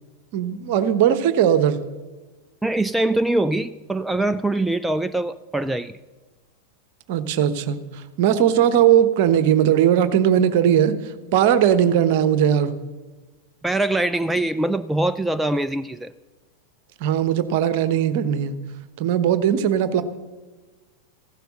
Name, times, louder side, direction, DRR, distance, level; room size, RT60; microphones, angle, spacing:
voice 1, 0.3-1.8 7.1-7.8 8.2-11.0 11.3-12.8 17.0-18.6 19.0-20.0, right 9 dB, 50° right, 12 dB, 1.0 m, -18 dB
voice 2, 2.6-5.9 13.6-16.1, right 2 dB, 5° right, 12 dB, 0.3 m, -23 dB
15.0 x 11.5 x 6.5 m, 1.3 s
figure-of-eight pair, 90°, 0 cm